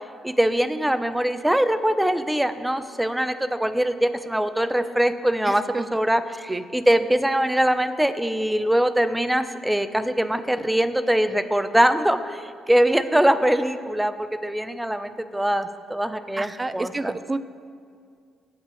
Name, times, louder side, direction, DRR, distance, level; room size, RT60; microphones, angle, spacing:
voice 1, 0.2-17.1, right 1 dB, 10° right, 10 dB, 0.9 m, -22 dB
voice 2, 5.5-5.9 6.5-6.6 16.4-17.4, right 2 dB, 25° right, 13 dB, 0.7 m, -29 dB
22.5 x 8.8 x 3.3 m, 2.2 s
hypercardioid pair, 50°, 0 cm